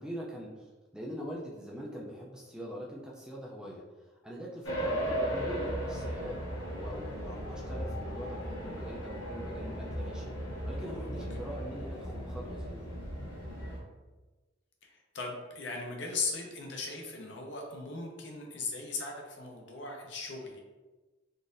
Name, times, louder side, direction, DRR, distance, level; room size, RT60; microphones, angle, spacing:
voice 1, 0.0-10.3 10.6-12.9, equal, 5° right, -4 dB, 0.3 m, -43 dB
sound 1, 4.6-13.8, equal, 85° left, 1.3 m, -36 dB
voice 2, 14.8-20.6, left 4 dB, 65° left, 1 dB, 0.6 m, -38 dB
3.8 x 2.5 x 2.5 m, 1.2 s
head